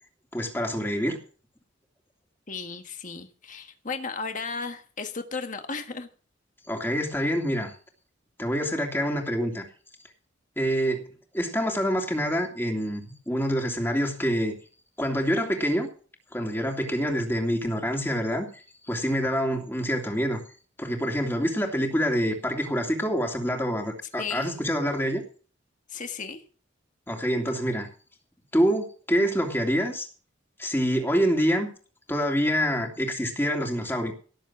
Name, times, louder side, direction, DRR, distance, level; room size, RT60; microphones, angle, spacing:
voice 1, 0.3-1.2 6.7-7.7 8.4-9.7 10.6-11.0 11.3-14.6 15.0-15.9 16.3-20.4 20.8-25.2 27.1-27.9 28.5-30.1 30.6-31.7 32.1-34.1, equal, 10° left, 2 dB, 2.9 m, -26 dB
voice 2, 2.5-6.1 24.2-24.5 25.9-26.4, left 4 dB, 40° left, 7 dB, 1.6 m, -35 dB
18.0 x 7.6 x 6.1 m, 0.39 s
head